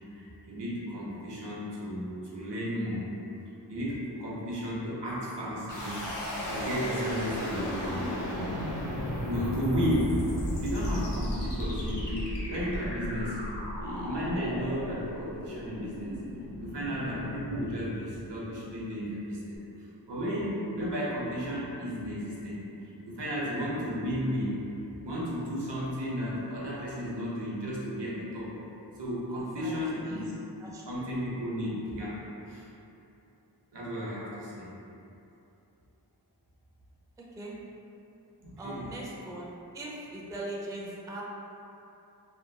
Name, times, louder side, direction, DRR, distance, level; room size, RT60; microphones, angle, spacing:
voice 1, 0.0-3.1 3.7-6.0 6.5-8.1 9.2-10.2 10.5-13.4 13.8-16.2 16.6-19.6 20.1-22.6 23.1-24.6 25.0-28.5 29.0-30.3 30.9-32.2 32.5-32.7 33.7-34.7 38.4-38.9, equal, 85° right, -7 dB, 0.7 m, -33 dB
sound 1, 5.7-18.6, equal, 85° left, 0.7 m, -35 dB
voice 2, 29.6-30.3 30.6-31.1 37.4-37.6 38.6-39.5 39.7-41.2, right 1 dB, 10° right, -4 dB, 0.3 m, -40 dB
2.8 x 2.2 x 2.6 m, 2.9 s
wide cardioid pair, 45°, 41 cm